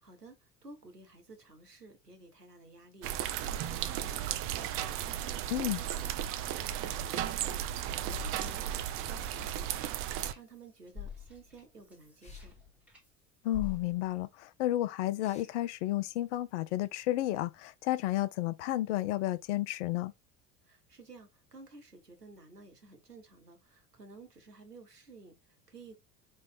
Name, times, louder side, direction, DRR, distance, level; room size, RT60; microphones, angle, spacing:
voice 1, 0.0-12.5 20.6-26.0, right 3 dB, 90° right, 1.0 m, -54 dB
sound 1, 3.0-10.3, right 11 dB, 30° right, 0.4 m, -35 dB
sound 2, 6.2-6.4 9.2-9.5 12.2-12.5 15.2-15.5, left 3 dB, 15° left, 1.1 m, -60 dB
sound 3, 6.6-7.7 8.0-13.1 13.5-14.2, left 6 dB, 5° right, 1.6 m, -48 dB
voice 2, 13.4-20.1, left 15 dB, 50° left, 0.5 m, -32 dB
4.3 x 3.1 x 3.7 m
figure-of-eight pair, 70°, 46 cm